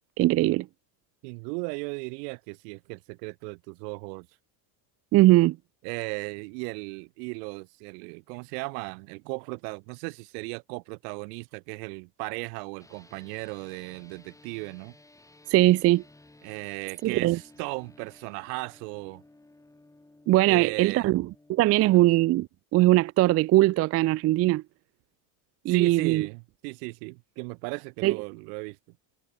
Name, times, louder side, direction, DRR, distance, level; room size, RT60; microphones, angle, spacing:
voice 1, 0.2-0.7 5.1-5.6 15.5-16.0 17.0-17.4 20.3-22.5 22.7-24.6 25.6-26.3 28.0-28.2, right 17 dB, 30° right, 0.4 m, -21 dB
voice 2, 1.2-4.3 5.8-14.9 16.4-19.2 20.4-21.1 21.8-22.0 25.7-28.8, right 35 dB, 75° right, 4.5 m, -36 dB
sound 1, 12.8-22.3, left 2 dB, 5° left, 4.2 m, -56 dB
cardioid pair, 145°, 47 cm